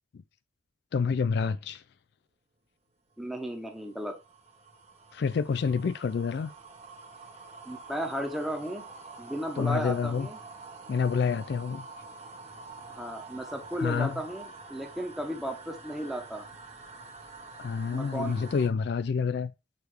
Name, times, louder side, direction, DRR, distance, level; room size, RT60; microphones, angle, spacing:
voice 1, 0.9-1.8 5.1-6.5 9.6-10.3 10.9-11.8 13.8-14.2 17.6-19.5, left 5 dB, 60° left, 0.3 m, -28 dB
sound 1, 3.1-18.7, right 3 dB, 35° right, 1.0 m, -47 dB
voice 2, 3.2-4.1 7.7-8.8 9.2-10.4 12.9-16.5 17.9-18.5, equal, ahead, 1.0 m, -34 dB
6.7 x 3.4 x 4.4 m
head